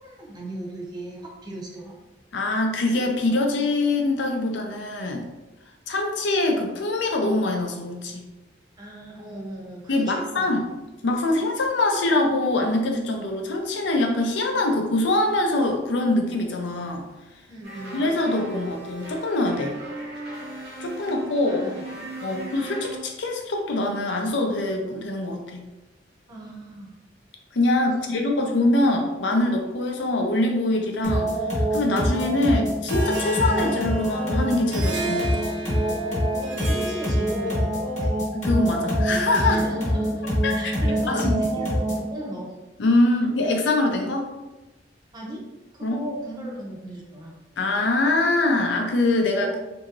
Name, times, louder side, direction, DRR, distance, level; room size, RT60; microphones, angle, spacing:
voice 1, 0.0-1.9 8.8-10.6 17.5-18.1 21.5-21.8 22.3-22.6 26.3-26.9 36.3-38.2 39.4-40.3 40.5-42.5 45.1-45.4 45.7-47.3 49.3-49.6, right 1 dB, 25° right, -2 dB, 0.6 m, -37 dB
voice 2, 2.3-5.3 5.9-8.3 9.9-10.7 11.0-17.0 17.9-19.7 20.8-21.6 22.2-25.7 27.5-31.3 31.7-35.5 38.3-39.6 40.4-40.7 41.1-41.4 42.8-44.3 45.8-46.0 47.6-49.5, left 2 dB, 75° left, 2 dB, 0.5 m, -23 dB
sound 1, 17.6-23.0, right 2 dB, 60° right, 1.1 m, -37 dB
sound 2, 31.0-42.1, equal, 40° left, 1.1 m, -25 dB
Harp, 32.9-37.9, right 2 dB, 80° right, 0.5 m, -34 dB
2.9 x 2.7 x 2.5 m, 1.0 s
head